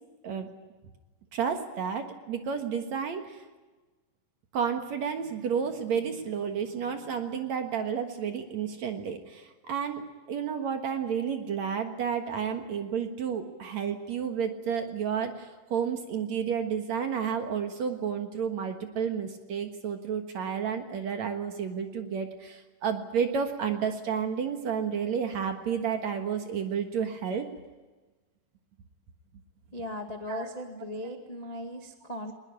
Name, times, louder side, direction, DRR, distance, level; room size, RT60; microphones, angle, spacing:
voice 1, 1.3-3.4 4.5-10.0 10.3-27.5 30.3-30.5, right 7 dB, 60° right, 6 dB, 2.4 m, -31 dB
voice 2, 29.7-32.3, left 1 dB, 20° left, 4 dB, 1.0 m, -38 dB
21.0 x 20.5 x 9.9 m, 1.2 s
omnidirectional pair, 4.2 m